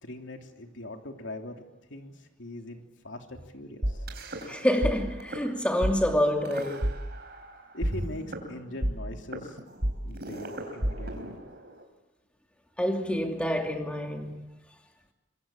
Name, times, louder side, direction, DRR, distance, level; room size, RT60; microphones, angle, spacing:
voice 1, 0.0-1.6 1.9-2.1 2.4-4.0 7.7-9.6 10.0-11.4, left 1 dB, 75° left, 3.1 m, -41 dB
sound 1, 3.8-4.9 5.2-5.4 5.8-5.9 6.4-7.5 7.8-11.8, right 1 dB, 55° right, 4.6 m, -31 dB
voice 2, 4.5-7.0 12.8-14.5, equal, 5° left, 2.7 m, -27 dB
26.0 x 22.5 x 8.8 m
head